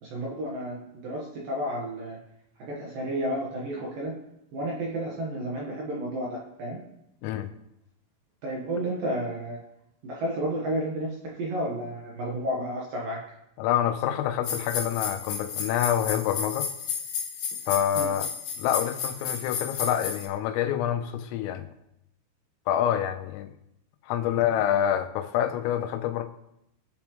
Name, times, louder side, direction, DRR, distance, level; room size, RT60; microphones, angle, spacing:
voice 1, 0.0-0.8 1.0-2.2 2.7-4.1 4.5-6.8 8.4-9.6 10.0-13.2 18.0-18.1, right 1 dB, 60° right, -3 dB, 2.4 m, -31 dB
voice 2, 13.6-16.7 17.7-18.3 18.6-21.7 22.7-23.5 24.0-26.2, left 10 dB, 90° left, 7 dB, 3.4 m, -27 dB
sound 1, 14.4-20.3, left 6 dB, 65° left, 3.8 m, -33 dB
19.5 x 7.0 x 3.3 m, 0.82 s
omnidirectional pair, 5.9 m